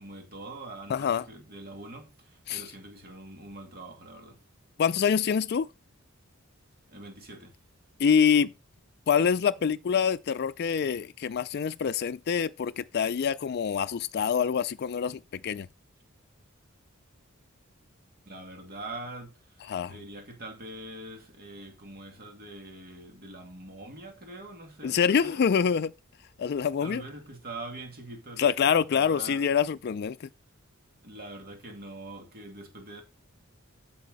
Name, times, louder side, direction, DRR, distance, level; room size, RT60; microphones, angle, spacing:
voice 1, 0.0-4.4 6.9-7.6 18.2-19.6 19.9-25.5 26.8-29.5 31.0-33.0, right 2 dB, 50° right, 2.4 m, -43 dB
voice 2, 0.9-1.2 2.5-2.6 4.8-5.7 8.0-8.5 9.1-15.7 19.7-20.0 24.8-25.9 26.4-27.0 28.4-30.3, left 7 dB, 50° left, 0.4 m, -26 dB
8.4 x 7.1 x 4.0 m
head